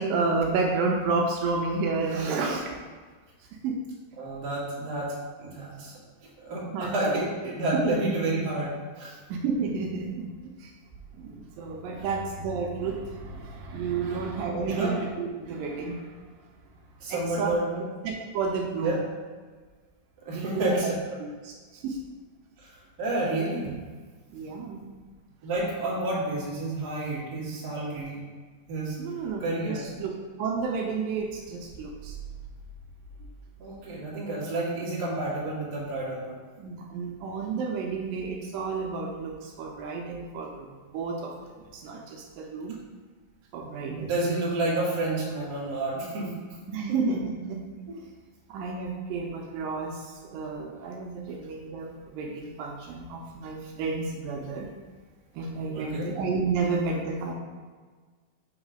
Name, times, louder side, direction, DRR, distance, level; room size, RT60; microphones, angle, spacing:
voice 1, 0.0-2.7 3.6-3.8 6.7-7.2 7.7-8.0 9.3-10.7 11.1-16.1 17.1-17.5 18.0-19.0 20.3-20.9 21.2-22.0 24.3-24.8 29.0-30.1 30.4-32.2 36.6-40.7 40.9-42.8 43.5-44.1 46.7-47.6 48.5-54.7 55.3-57.3, right 4 dB, 80° right, 0 dB, 2.3 m, -31 dB
voice 2, 4.2-5.1 5.4-5.9 6.4-9.2 14.0-14.2 14.6-14.9 17.0-17.9 18.8-19.0 20.2-21.0 22.6-23.7 25.4-28.2 28.7-29.0 29.4-29.8 33.6-36.3 43.8-46.3 47.9-48.0 55.7-56.1, right 2 dB, 40° right, -7 dB, 1.6 m, -30 dB
5.2 x 4.0 x 5.0 m, 1.5 s
omnidirectional pair, 4.1 m